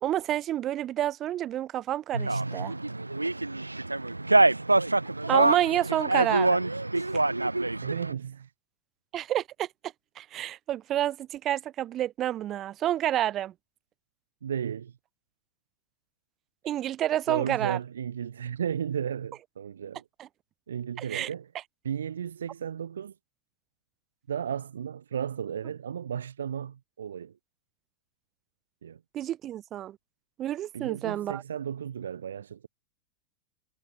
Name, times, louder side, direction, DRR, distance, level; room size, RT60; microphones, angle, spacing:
voice 1, 0.0-2.7 5.3-6.6 7.1-7.2 9.1-9.7 10.2-13.5 16.6-17.8 20.2-20.3 21.0-21.3 29.1-30.0 30.4-31.4, right 12 dB, 30° right, 1.1 m, -29 dB
sound 1, 2.1-8.1, right 2 dB, 85° right, 0.5 m, -25 dB
voice 2, 7.8-8.5 14.4-15.0 17.3-20.0 20.7-21.5 21.8-23.1 24.3-27.3 28.8-29.0 30.7-32.7, right 8 dB, 65° right, 1.5 m, -34 dB
figure-of-eight pair, 90°, 0 cm